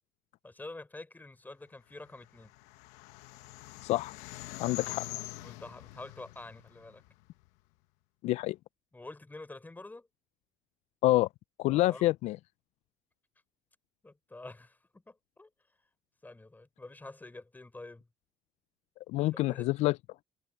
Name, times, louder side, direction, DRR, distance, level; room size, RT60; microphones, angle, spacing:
voice 1, 0.4-2.5 5.4-7.0 8.9-10.1 11.7-12.0 14.0-15.5 16.2-18.1 19.2-19.7, left 2 dB, 15° left, 3.9 m, -47 dB
sound 1, 2.1-7.5, left 19 dB, 85° left, 1.3 m, -45 dB
voice 2, 3.8-4.1 4.6-5.1 8.2-8.6 11.0-11.3 11.6-12.4 19.1-20.0, left 17 dB, 70° left, 0.4 m, -27 dB
supercardioid pair, 80°, 12 cm